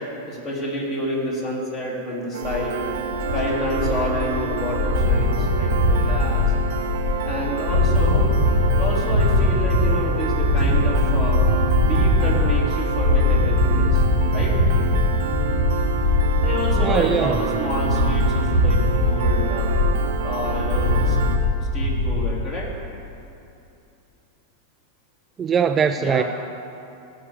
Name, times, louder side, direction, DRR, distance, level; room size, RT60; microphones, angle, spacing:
voice 1, 0.3-2.8 3.3-6.5 7.2-8.2 8.7-11.4 11.7-14.0 14.3-14.5 16.4-19.7 20.2-21.2 21.5-22.7 26.0-26.2, left 1 dB, 35° left, -3 dB, 2.9 m, -29 dB
Piano, 2.3-21.4, right 7 dB, 55° right, 0.7 m, -29 dB
sound 1, 2.4-22.3, left 2 dB, 70° left, 2.9 m, -21 dB
voice 2, 16.8-17.4 25.4-26.2, right 7 dB, 20° right, 9 dB, 0.3 m, -21 dB
15.5 x 5.2 x 6.9 m, 2.7 s
figure-of-eight pair, 90°, 0 cm